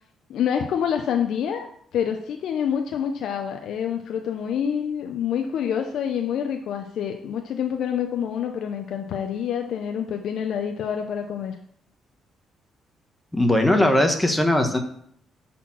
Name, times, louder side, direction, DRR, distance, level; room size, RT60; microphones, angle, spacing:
voice 1, 0.3-1.7 1.9-11.5, left 8 dB, 75° left, 4 dB, 0.6 m, -27 dB
voice 2, 13.3-14.8, left 1 dB, 10° left, 4 dB, 1.1 m, -19 dB
7.1 x 4.3 x 6.0 m, 0.66 s
cardioid pair, 90°, 0 cm